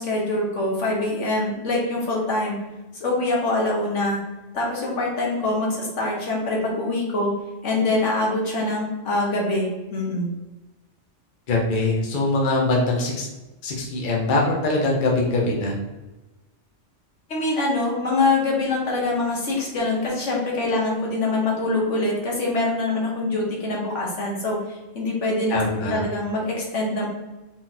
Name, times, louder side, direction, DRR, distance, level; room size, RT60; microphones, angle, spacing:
voice 1, 0.0-2.6 3.0-4.2 4.5-7.3 7.6-10.3 17.3-27.1, left 2 dB, 75° left, -2 dB, 1.5 m, -24 dB
voice 2, 11.5-13.3 13.6-15.8 25.5-26.0, left 2 dB, 45° left, -2 dB, 1.0 m, -22 dB
4.0 x 3.0 x 3.9 m, 1.1 s
omnidirectional pair, 1.3 m